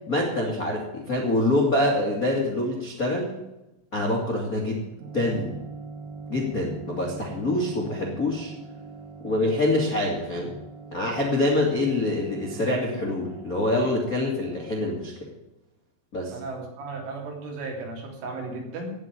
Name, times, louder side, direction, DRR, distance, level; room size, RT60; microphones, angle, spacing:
voice 1, 0.1-3.3 3.9-4.8 5.1-5.5 6.3-8.5 9.2-10.6 10.9-15.1 16.1-16.3, left 1 dB, 50° left, -2 dB, 1.0 m, -25 dB
sound 1, 5.0-14.9, right 4 dB, 55° right, 3.2 m, -43 dB
voice 2, 16.3-18.9, right 3 dB, 75° right, 0 dB, 5.5 m, -35 dB
17.0 x 5.8 x 9.2 m, 0.97 s
omnidirectional pair, 5.7 m